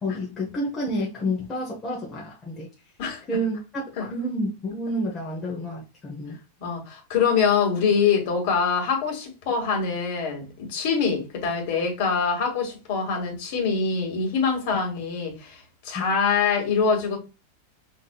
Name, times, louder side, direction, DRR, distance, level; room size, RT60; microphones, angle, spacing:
voice 1, 0.0-2.7 3.3-6.4 15.9-16.0, equal, 15° left, 0.9 m, -29 dB
voice 2, 6.6-17.2, left 5 dB, 45° left, 1.8 m, -24 dB
5.7 x 2.8 x 2.3 m
supercardioid pair, 165°, 0 cm